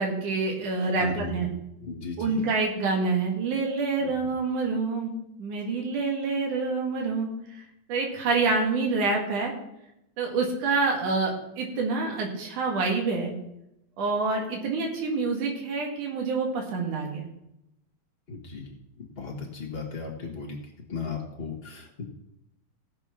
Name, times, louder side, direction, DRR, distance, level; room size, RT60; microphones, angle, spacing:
voice 1, 0.0-1.5 2.2-5.1 5.4-7.3 7.9-9.5 10.2-13.4 14.0-17.3, right 4 dB, 70° right, 1 dB, 3.6 m, -27 dB
voice 2, 1.0-1.5 1.8-2.4 4.0-4.1 18.3-20.6 20.9-22.0, left 4 dB, 50° left, 0 dB, 0.7 m, -36 dB
17.0 x 6.3 x 5.8 m, 0.83 s
omnidirectional pair, 3.7 m